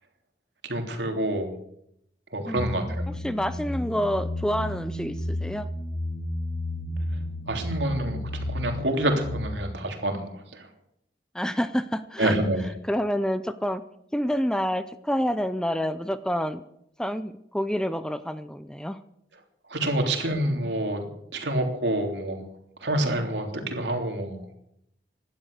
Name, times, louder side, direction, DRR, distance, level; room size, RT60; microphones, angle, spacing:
voice 1, 0.7-1.5 2.3-2.8 7.5-10.6 12.2-12.6 19.7-22.4 22.8-24.6, right 1 dB, 80° right, 3 dB, 3.2 m, -27 dB
voice 2, 2.5-5.7 11.3-12.4 12.8-13.8 14.1-16.6 17.0-19.0, equal, 5° left, 12 dB, 0.5 m, -28 dB
sound 1, 2.6-9.4, left 1 dB, 35° left, 2.4 m, -32 dB
17.0 x 12.0 x 6.6 m, 0.74 s
head